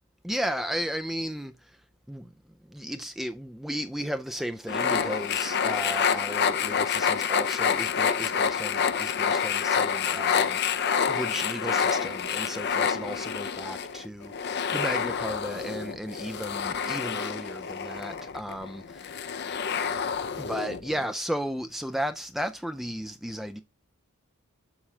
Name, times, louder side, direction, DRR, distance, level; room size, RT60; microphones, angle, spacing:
voice 1, 0.2-1.8 2.1-2.3 2.7-19.3 20.4-23.6, equal, ahead, 0.4 m, -34 dB
sound 1, 4.7-21.1, left 7 dB, 50° left, 0.6 m, -28 dB
7.3 x 6.3 x 3.2 m
head